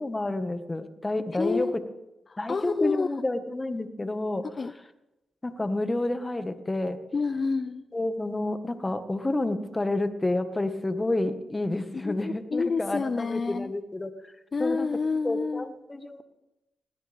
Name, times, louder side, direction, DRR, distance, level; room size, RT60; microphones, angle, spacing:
voice 1, 0.0-1.7 2.4-4.4 5.4-7.0 7.9-14.1 14.6-14.9 15.2-16.2, left 2 dB, 25° left, 8 dB, 1.7 m, -29 dB
voice 2, 1.3-1.9 2.3-3.1 4.6-4.7 7.1-7.8 11.9-13.7 14.5-15.7, left 4 dB, 45° left, 12 dB, 0.7 m, -29 dB
21.0 x 17.0 x 3.6 m, 0.96 s
supercardioid pair, 50°, 0 cm